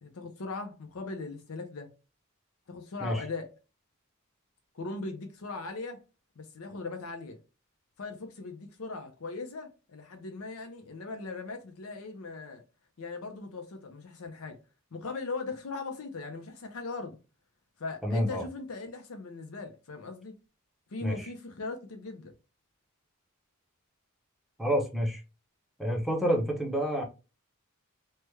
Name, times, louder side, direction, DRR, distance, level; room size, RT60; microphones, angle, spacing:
voice 1, 0.0-1.9 2.7-3.5 4.7-6.0 6.4-7.4 8.0-12.6 13.0-14.6 14.9-17.2 17.8-20.3 20.9-22.3, left 3 dB, 75° left, 0.6 m, -39 dB
voice 2, 18.0-18.4 21.0-21.3 24.6-25.2 25.8-27.0, equal, ahead, 0.6 m, -28 dB
3.3 x 2.2 x 3.2 m
head